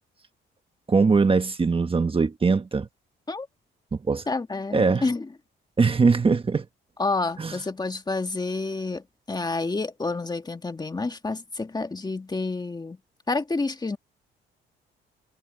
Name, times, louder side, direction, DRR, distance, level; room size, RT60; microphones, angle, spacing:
voice 1, 0.9-2.9 3.9-4.2 4.7-5.0 5.8-6.6 7.4-7.6, right 4 dB, 25° right, 1.4 m, -21 dB
voice 2, 4.3-5.3 7.0-13.0 13.3-14.0, left 3 dB, 20° left, 1.8 m, -29 dB
cardioid pair, 90°, 20 cm